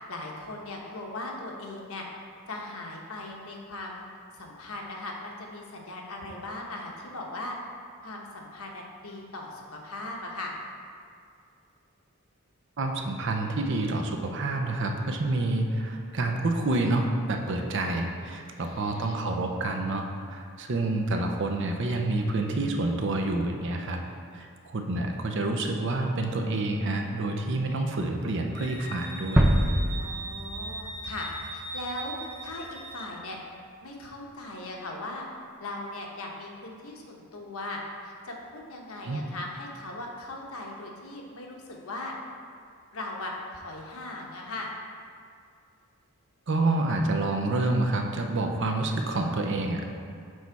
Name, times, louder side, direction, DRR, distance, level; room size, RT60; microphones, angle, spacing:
voice 1, 0.0-2.1 2.5-4.0 4.3-7.6 8.0-10.5 18.6-19.3 27.7-28.2 30.0-33.4 33.8-35.3 35.6-42.1 42.9-44.7, left 2 dB, 75° left, -1 dB, 1.0 m, -39 dB
voice 2, 12.8-24.0 24.3-29.5 39.0-39.2 46.5-49.9, right 2 dB, 55° right, 3 dB, 0.6 m, -28 dB
Wind instrument woodwind instrument, 28.5-33.1, right 2 dB, 30° left, 0.9 m, -40 dB
sound 1, 29.4-32.2, equal, 10° right, 0.3 m, -26 dB
6.4 x 4.1 x 4.6 m, 2.3 s
head